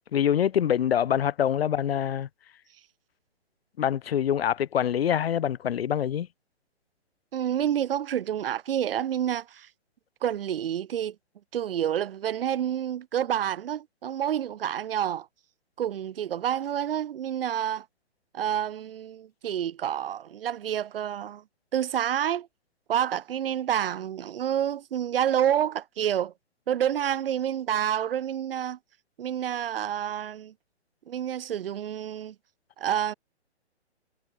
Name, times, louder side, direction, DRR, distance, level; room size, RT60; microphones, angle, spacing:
voice 1, 0.1-2.3 3.8-6.3, left 9 dB, 60° left, 1.0 m, -25 dB
voice 2, 7.3-9.7 10.2-11.1 11.5-15.3 15.8-17.8 18.3-21.4 21.7-22.5 22.9-26.3 26.7-28.8 29.2-30.5 31.1-32.3 32.8-33.1, right 10 dB, 55° right, 1.5 m, -28 dB
hypercardioid pair, 145°, 34 cm